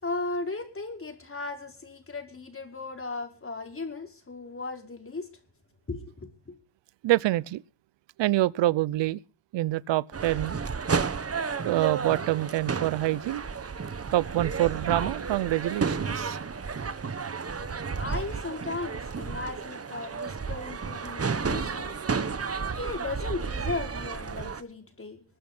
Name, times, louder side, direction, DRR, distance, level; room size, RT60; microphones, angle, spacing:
voice 1, 0.0-5.3 5.9-6.6 18.0-22.0 22.7-25.2, left 3 dB, 30° left, 5.2 m, -36 dB
voice 2, 7.0-7.6 8.2-9.2 9.5-10.6 11.6-13.4 14.1-16.4, right 16 dB, 80° right, 0.8 m, -26 dB
sound 1, 10.1-24.6, right 5 dB, 35° right, 1.6 m, -32 dB
22.5 x 8.6 x 6.1 m
cardioid pair, 75°, 43 cm